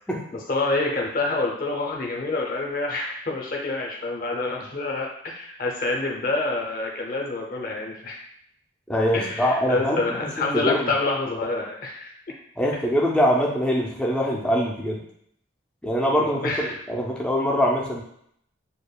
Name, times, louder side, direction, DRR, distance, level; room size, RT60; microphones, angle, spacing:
voice 1, 0.3-8.2 9.1-12.1 16.0-16.8, left 2 dB, 45° left, -1 dB, 0.6 m, -27 dB
voice 2, 8.9-10.0 10.5-10.9 12.6-15.0 15.8-18.0, equal, 5° left, -3 dB, 0.4 m, -23 dB
6.7 x 2.4 x 2.2 m, 0.69 s
head